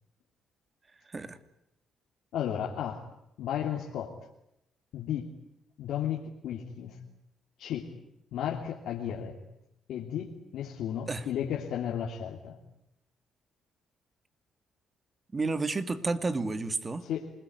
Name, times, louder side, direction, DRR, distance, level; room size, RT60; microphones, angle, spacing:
voice 1, 1.1-1.4 11.1-11.3 15.3-17.1, right 3 dB, 30° right, 10 dB, 2.5 m, -31 dB
voice 2, 2.3-3.1 3.4-4.3 4.9-5.3 5.8-7.0 7.6-8.0 8.3-9.4 9.9-12.6 17.0-17.3, left 9 dB, 80° left, -1 dB, 3.1 m, -34 dB
27.5 x 21.5 x 9.7 m, 0.81 s
cardioid pair, 90°, 0 cm